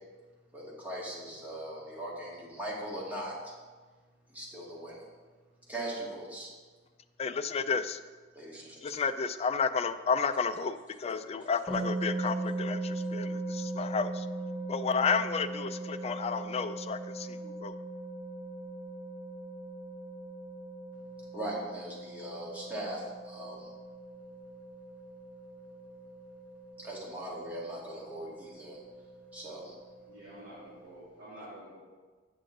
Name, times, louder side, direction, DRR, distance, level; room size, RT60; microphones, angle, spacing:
voice 1, 0.5-3.6 4.3-5.1 5.7-6.5 8.3-8.8 21.3-23.7 26.8-28.8 29.3-29.8, right 1 dB, 10° right, -6 dB, 1.9 m, -40 dB
voice 2, 7.2-8.0 8.8-14.3 14.7-17.8, left 5 dB, 35° left, 11 dB, 0.3 m, -31 dB
sound 1, 11.7-31.0, right 2 dB, 10° left, 1.6 m, -40 dB
voice 3, 30.1-31.8, right 1 dB, 55° right, -10 dB, 2.5 m, -48 dB
7.6 x 6.9 x 3.8 m, 1.4 s
head